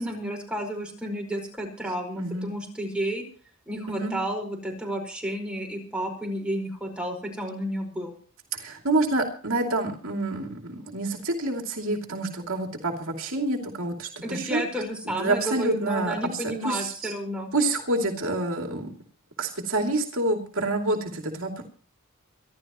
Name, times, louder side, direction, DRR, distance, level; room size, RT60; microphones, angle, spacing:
voice 1, 0.0-3.2 3.7-8.1 14.2-17.5, right 1 dB, 5° right, 0 dB, 5.0 m, -31 dB
voice 2, 2.2-2.5 3.9-4.2 8.5-14.6 15.2-17.1 17.5-18.9 19.4-21.6, right 2 dB, 60° right, 2 dB, 2.8 m, -28 dB
26.0 x 12.0 x 3.1 m, 0.43 s
head